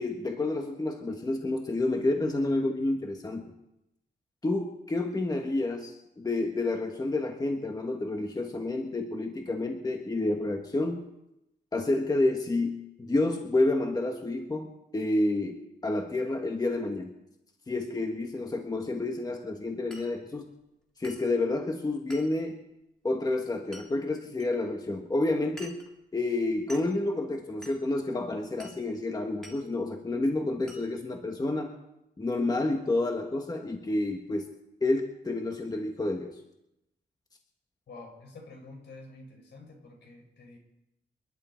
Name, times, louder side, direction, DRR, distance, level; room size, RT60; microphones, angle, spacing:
voice 1, 0.0-3.4 4.4-11.1 11.7-17.1 17.7-20.5 21.0-22.6 23.0-25.8 26.1-31.7 32.2-34.5 34.8-36.4, left 2 dB, 20° left, 3 dB, 1.5 m, -29 dB
Glass, 19.9-20.1 21.0-21.3 22.1-22.4 23.7-23.9 24.4-24.5 25.6-25.9 26.7-26.9 27.6-27.8 28.6-28.8 29.4-29.6 30.7-30.9, equal, 5° left, 2.8 m, -47 dB
voice 2, 37.9-40.6, left 2 dB, 75° left, 1 dB, 6.2 m, -48 dB
28.5 x 11.5 x 4.5 m, 0.86 s
wide cardioid pair, 150°, 18 cm